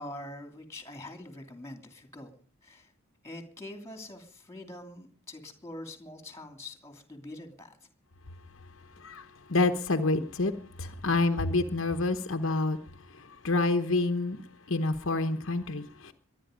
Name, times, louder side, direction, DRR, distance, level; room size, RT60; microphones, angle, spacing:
voice 1, 0.0-2.9 3.2-7.8, left 1 dB, 15° left, 2.8 m, -44 dB
voice 2, 9.0-10.5 10.8-12.8 13.1-14.4 14.7-16.1, left 3 dB, 60° left, 1.0 m, -28 dB
23.0 x 9.9 x 5.2 m
head